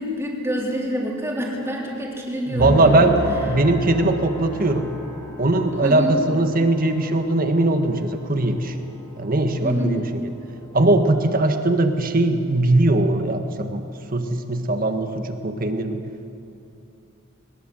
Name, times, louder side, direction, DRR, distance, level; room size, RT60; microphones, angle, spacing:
voice 1, 0.0-3.1 5.8-6.2 9.6-10.0, equal, 15° right, -2 dB, 3.8 m, -27 dB
voice 2, 2.5-3.1 3.4-4.9 5.4-8.7 9.2-10.1 10.7-13.8 14.1-16.0, right 2 dB, 45° right, 6 dB, 1.7 m, -20 dB
sound 1, 2.6-11.0, equal, 15° left, 5.2 m, -34 dB
21.5 x 20.5 x 7.8 m, 2.8 s
head